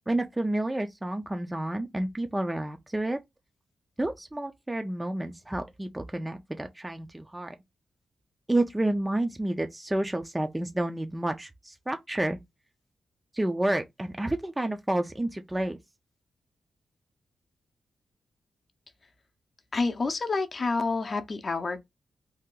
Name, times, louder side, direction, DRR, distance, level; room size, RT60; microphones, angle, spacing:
voice 1, 0.1-3.2 4.0-7.5 8.5-12.4 13.3-15.8, right 1 dB, 15° right, 0.4 m, -30 dB
voice 2, 19.7-21.8, left 3 dB, 40° left, 0.6 m, -28 dB
2.7 x 2.3 x 3.7 m
cardioid pair, 85°, 0 cm